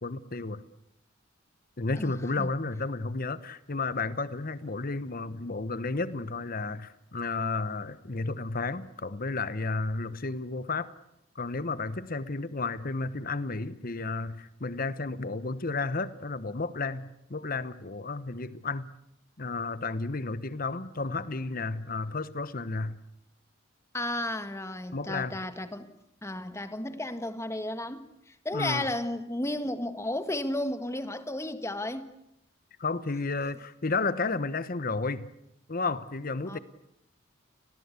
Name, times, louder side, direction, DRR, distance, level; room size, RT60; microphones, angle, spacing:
voice 1, 0.0-0.6 1.8-10.9 11.3-18.9 19.4-23.0 24.9-25.3 28.5-28.8 32.8-35.3 35.7-36.6, left 3 dB, 45° left, 1.1 m, -32 dB
voice 2, 2.0-2.5 23.9-25.9 26.2-28.1 28.4-32.1 36.5-36.6, left 1 dB, 15° left, 1.6 m, -33 dB
29.5 x 21.0 x 8.3 m
head